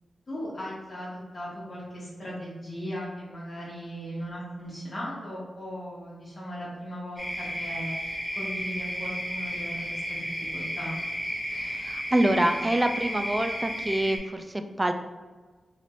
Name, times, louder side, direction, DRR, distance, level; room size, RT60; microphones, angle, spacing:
voice 1, 0.3-7.9 8.3-11.0, equal, 40° left, -8 dB, 1.1 m, -37 dB
sound 1, 7.2-14.2, equal, 5° left, 1.2 m, -33 dB
voice 2, 11.5-14.9, right 1 dB, 15° right, 6 dB, 0.3 m, -26 dB
3.2 x 2.5 x 4.2 m, 1.3 s
wide cardioid pair, 120°, 0 cm